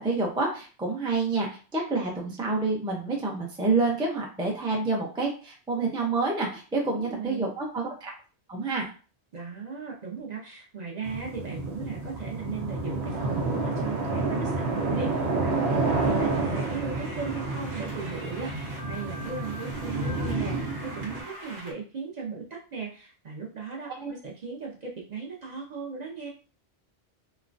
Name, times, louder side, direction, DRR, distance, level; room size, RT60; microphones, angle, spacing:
voice 1, 0.0-8.1 8.5-8.9 24.0-24.1, right 3 dB, 5° right, -1 dB, 0.4 m, -28 dB
voice 2, 6.9-7.5 9.3-26.3, right 5 dB, 50° right, -2 dB, 0.6 m, -37 dB
sound 1, 11.0-21.2, right 3 dB, 85° right, 0.9 m, -29 dB
sound 2, 16.0-21.7, right 1 dB, 65° right, 1.0 m, -43 dB
3.0 x 2.1 x 2.5 m, 0.36 s
omnidirectional pair, 1.1 m